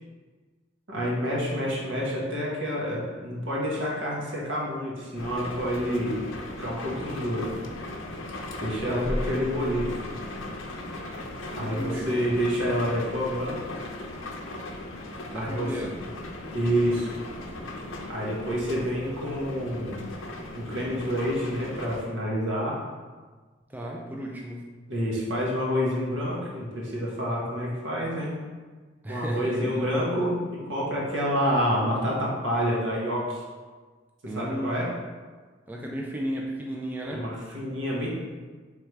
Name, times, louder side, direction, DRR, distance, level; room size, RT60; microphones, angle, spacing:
voice 1, 0.9-6.2 6.6-7.5 8.6-9.9 11.5-13.6 15.3-15.9 16.5-17.1 18.1-20.0 20.6-22.8 24.9-28.3 29.1-30.4 30.6-33.4 34.2-34.9 37.1-38.1, equal, 75° right, -4 dB, 1.2 m, -28 dB
sound 1, 5.2-22.0, left 1 dB, 90° left, 0.6 m, -37 dB
voice 2, 11.6-12.1 15.3-15.9 23.7-24.6 29.0-29.9 34.3-34.8 35.7-37.3, equal, 10° right, -1 dB, 0.3 m, -34 dB
3.5 x 3.3 x 4.6 m, 1.4 s
head